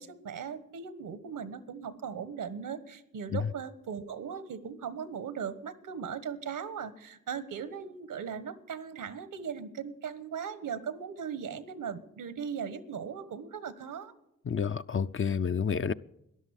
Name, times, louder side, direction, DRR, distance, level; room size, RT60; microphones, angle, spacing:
voice 1, 0.0-14.1, right 7 dB, 80° right, 1.2 m, -38 dB
voice 2, 14.5-15.9, left 6 dB, 40° left, 0.6 m, -29 dB
13.0 x 11.0 x 9.9 m
supercardioid pair, 45°, 32 cm